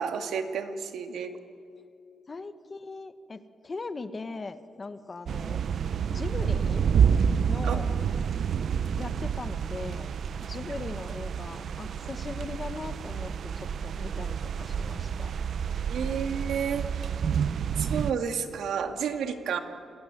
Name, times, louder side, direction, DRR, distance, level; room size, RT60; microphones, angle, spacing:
voice 1, 0.0-1.4 7.6-7.8 15.9-17.1 17.8-19.6, right 7 dB, 80° right, 6 dB, 2.2 m, -31 dB
voice 2, 2.3-5.6 6.1-6.8 7.5-8.0 9.0-15.3, left 3 dB, 25° left, 11 dB, 1.1 m, -40 dB
sound 1, 5.3-18.1, right 7 dB, 55° right, 0.6 m, -29 dB
29.0 x 19.5 x 9.7 m, 2.6 s
wide cardioid pair, 155°, 0 cm